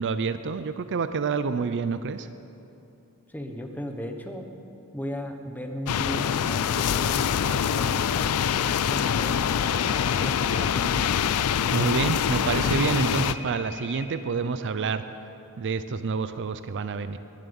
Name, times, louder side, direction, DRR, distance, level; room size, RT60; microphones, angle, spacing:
voice 1, 0.0-2.3 11.7-15.0 15.6-17.2, right 5 dB, 55° right, 12 dB, 0.5 m, -28 dB
voice 2, 3.3-4.5 4.9-11.1, equal, 10° left, 4 dB, 1.0 m, -36 dB
sound 1, 5.9-13.4, left 8 dB, 80° left, 0.4 m, -25 dB
sound 2, 12.7-14.1, left 2 dB, 10° right, 2.3 m, -41 dB
20.0 x 7.4 x 7.0 m, 2.8 s
head